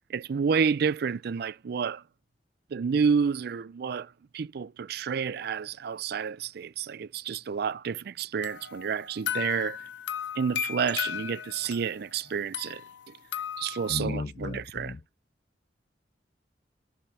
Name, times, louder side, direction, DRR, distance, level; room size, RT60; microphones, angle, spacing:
voice 1, 0.1-2.0 2.7-9.9 10.4-12.8 13.1-13.2 13.6-14.9, right 6 dB, 60° right, 0.4 m, -30 dB
sound 1, 8.4-12.0 12.5-14.0, left 9 dB, 90° left, 0.7 m, -35 dB
voice 2, 13.9-15.0, left 3 dB, 45° left, 0.5 m, -34 dB
7.0 x 4.9 x 3.3 m
head